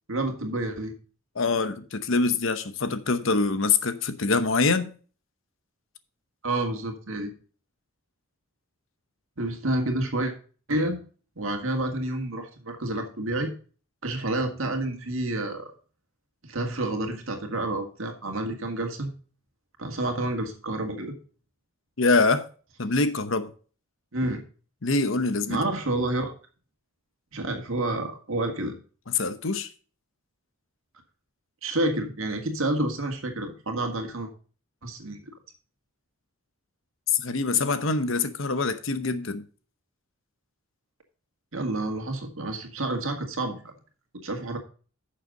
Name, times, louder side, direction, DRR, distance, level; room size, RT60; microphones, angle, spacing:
voice 1, 0.1-0.9 6.4-7.3 9.4-10.3 10.7-11.0 11.4-13.5 14.0-15.7 16.4-19.1 19.8-21.1 24.1-24.4 25.5-26.3 27.3-28.8 31.6-34.3 34.8-35.2 41.5-43.7 44.2-44.6, right 2 dB, 65° right, 2.0 m, -29 dB
voice 2, 1.4-4.9 22.0-22.5 22.8-23.5 24.8-25.6 29.1-29.7 37.1-39.4, left 3 dB, 60° left, 0.9 m, -24 dB
10.5 x 6.7 x 3.9 m
head